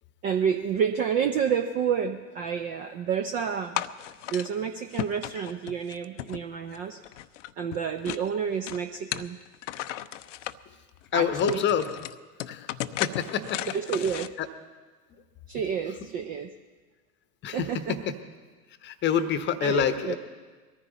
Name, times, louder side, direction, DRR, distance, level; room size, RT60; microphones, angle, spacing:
voice 1, 0.2-3.8 4.3-7.0 7.6-9.4 11.1-11.6 13.7-14.3 15.5-16.5 17.5-18.1 19.1-19.2 19.6-20.2, right 7 dB, 20° right, 8 dB, 0.4 m, -29 dB
sound 1, 3.8-4.5 4.9-6.8 7.0-8.3 8.7-10.6 11.1-11.2 11.4-14.3, left 13 dB, 55° left, 0.6 m, -35 dB
voice 2, 11.1-11.8 12.5-12.7 13.0-13.6 14.4-14.5 17.4-17.7 18.8-20.2, left 9 dB, 25° left, 12 dB, 0.9 m, -26 dB
21.5 x 14.0 x 4.1 m, 1.4 s
figure-of-eight pair, 85°, 45 cm